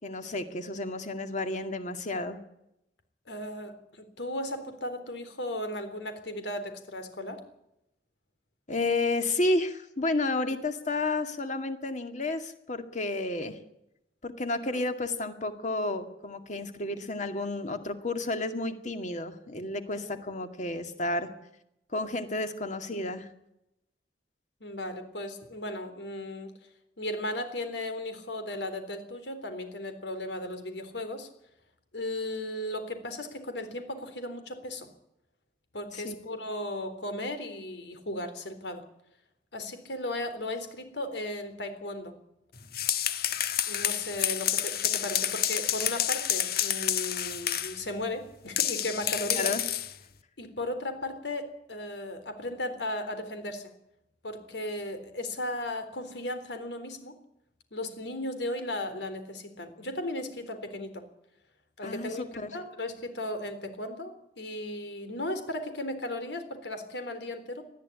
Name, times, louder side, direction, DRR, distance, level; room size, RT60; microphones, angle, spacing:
voice 1, 0.0-2.4 8.7-13.6 14.2-21.3 21.9-23.3 35.9-36.1 49.4-49.6 61.8-62.5, left 2 dB, 45° left, 7 dB, 2.2 m, -31 dB
voice 2, 3.3-7.4 19.9-20.2 24.6-26.5 27.0-31.3 31.9-34.9 35.7-38.8 39.5-42.1 43.7-49.5 50.4-53.7 54.2-57.1 57.7-61.0 61.8-67.6, left 1 dB, 85° left, 9 dB, 3.8 m, -36 dB
sound 1, 42.6-47.8 48.6-49.9, left 10 dB, 60° left, 1.3 m, -29 dB
20.0 x 13.5 x 9.9 m, 0.82 s
head